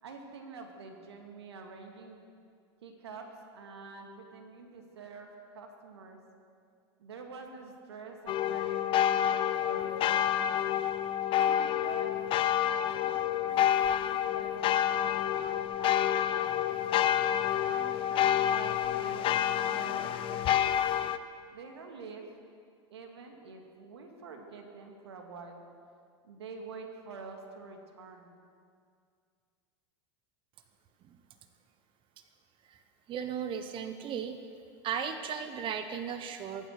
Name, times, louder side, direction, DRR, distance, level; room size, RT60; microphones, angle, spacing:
voice 1, 0.0-2.2 2.8-6.2 7.0-10.8 11.3-12.6 12.8-16.7 17.5-19.3 19.6-20.8 21.5-22.3 22.9-25.6 26.2-28.3, right 4 dB, 85° right, 3 dB, 2.1 m, -47 dB
sound 1, 8.3-21.2, left 11 dB, 40° left, 0.7 m, -28 dB
voice 2, 33.1-34.4 34.8-36.7, right 7 dB, 40° right, 8 dB, 1.1 m, -36 dB
23.0 x 9.1 x 6.6 m, 2.2 s
hypercardioid pair, 100°, 13 cm